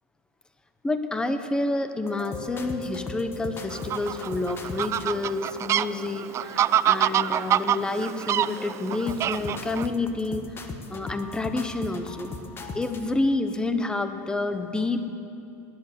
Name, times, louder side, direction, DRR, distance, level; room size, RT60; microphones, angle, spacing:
voice 1, 0.8-10.6 10.9-12.3 12.7-15.1, left 2 dB, 10° left, 9 dB, 1.0 m, -29 dB
sound 1, 2.0-6.1 6.6-6.7 7.1-7.8 8.1-13.1, left 4 dB, 25° left, 1.3 m, -39 dB
Fowl, 3.7-9.9, right 11 dB, 30° right, 0.3 m, -26 dB
17.5 x 11.0 x 6.7 m, 2.8 s
supercardioid pair, 115°, 9 cm